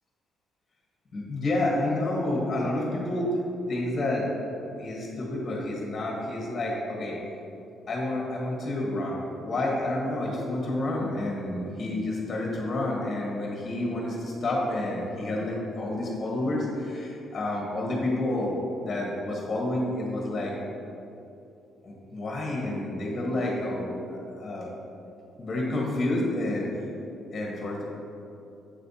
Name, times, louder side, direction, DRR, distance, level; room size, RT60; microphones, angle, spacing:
voice 1, 1.1-3.4 3.7-4.3 4.8-7.2 7.9-20.5 21.8-24.7 25.4-26.9 27.3-27.9, left 1 dB, 45° left, -3 dB, 1.4 m, -29 dB
7.9 x 3.3 x 4.1 m, 2.7 s
cardioid pair, 90°, 0 cm